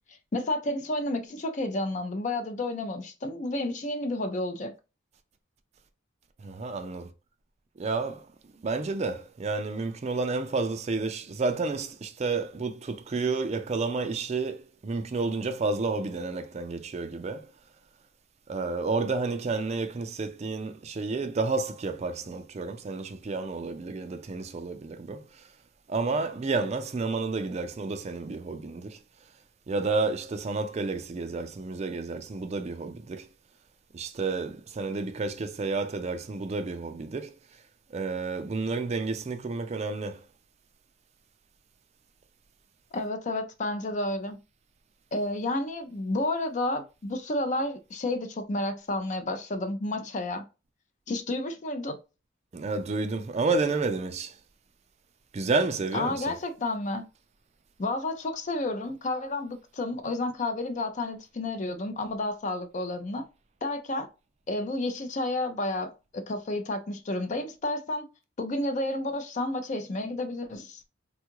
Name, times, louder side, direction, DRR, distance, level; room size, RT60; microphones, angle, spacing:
voice 1, 0.3-4.7 42.9-44.4 45.1-50.4 51.1-52.0 55.9-57.1 57.8-63.2 63.6-64.1 64.5-68.1 68.4-70.8, left 2 dB, 40° left, 0.5 m, -31 dB
voice 2, 6.4-7.1 7.8-8.3 8.6-17.5 18.5-25.5 25.9-29.0 29.7-33.3 33.9-37.3 37.9-40.2 52.5-54.4 55.3-56.4, right 3 dB, 35° right, 0.4 m, -30 dB
3.5 x 2.3 x 2.9 m
head